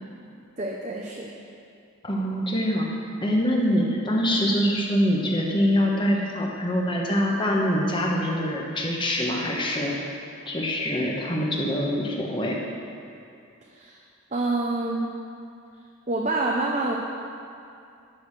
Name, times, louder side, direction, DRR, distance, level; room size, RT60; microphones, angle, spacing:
voice 1, 0.6-1.3 13.7-14.0 14.3-15.1 16.1-17.0, right 2 dB, 35° right, -1 dB, 0.7 m, -27 dB
voice 2, 2.0-2.9 3.2-9.9 10.5-12.6, equal, 20° left, -1 dB, 1.2 m, -24 dB
10.5 x 6.3 x 6.5 m, 2.5 s
head